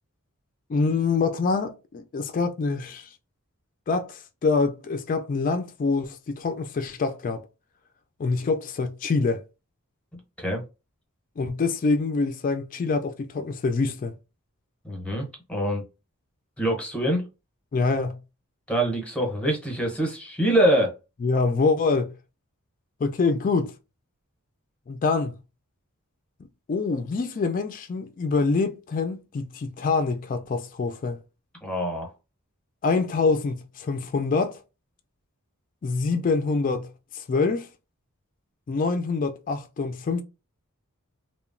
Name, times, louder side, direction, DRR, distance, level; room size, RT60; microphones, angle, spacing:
voice 1, 0.7-3.1 3.9-7.4 8.2-9.4 11.4-14.1 17.7-18.2 21.2-22.1 23.0-23.7 24.9-25.4 26.7-31.2 32.8-34.6 35.8-37.7 38.7-40.2, left 4 dB, 40° left, 0.3 m, -25 dB
voice 2, 14.8-15.8 16.6-17.2 18.7-20.9 31.6-32.1, right 1 dB, 5° left, 0.8 m, -24 dB
2.9 x 2.1 x 2.4 m
head